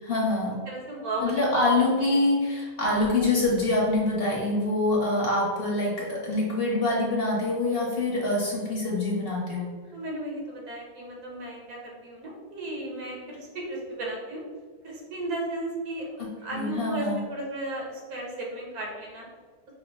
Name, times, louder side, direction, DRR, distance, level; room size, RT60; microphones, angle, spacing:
voice 1, 0.0-0.6 1.2-9.7 16.2-17.2, left 2 dB, 45° left, -4 dB, 0.9 m, -25 dB
voice 2, 0.7-1.6 9.9-14.4 14.8-16.1 16.4-19.3, right 1 dB, 85° right, -2 dB, 1.5 m, -35 dB
5.1 x 2.0 x 3.1 m, 1.5 s
omnidirectional pair, 1.5 m